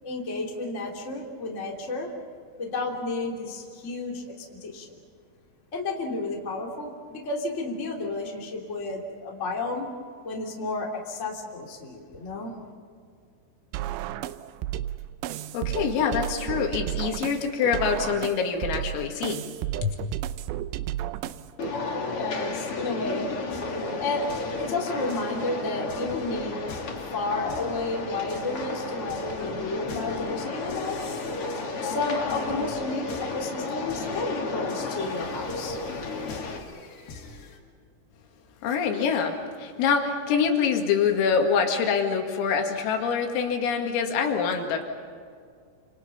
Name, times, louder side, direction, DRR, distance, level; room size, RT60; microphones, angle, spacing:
voice 1, 0.0-2.1 2.6-4.9 5.7-9.9 10.2-12.5 21.8-23.3 24.0-24.3 24.6-26.6 27.1-31.0 31.8-33.0 33.3-35.8, left 3 dB, 20° left, -1 dB, 2.6 m, -32 dB
sound 1, 13.7-21.7, right 12 dB, 85° right, 2.5 m, -33 dB
voice 2, 15.5-19.5 19.8-20.0 38.6-44.9, left 6 dB, 80° left, 3 dB, 4.8 m, -25 dB
sound 2, 21.6-36.6, left 3 dB, 35° left, 2.4 m, -32 dB
sound 3, 23.5-37.6, left 4 dB, 55° left, 4.0 m, -46 dB
29.5 x 27.5 x 5.7 m, 2.2 s
omnidirectional pair, 6.0 m